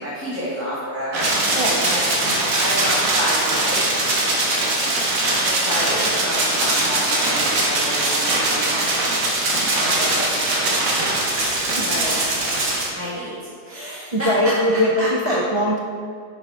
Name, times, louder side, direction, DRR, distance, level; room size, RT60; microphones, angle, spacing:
voice 1, 0.0-2.3 2.6-3.8 5.4-8.9 9.7-10.2 10.7-11.0 11.7-12.1 12.9-13.3 13.6-14.3 15.0-15.3, equal, 10° right, -10 dB, 1.6 m, -30 dB
sound 1, 1.1-12.9, right 2 dB, 85° right, 2.3 m, -21 dB
voice 2, 14.1-15.8, equal, 55° right, -1 dB, 0.3 m, -20 dB
10.5 x 7.1 x 3.6 m, 2.1 s
omnidirectional pair, 1.8 m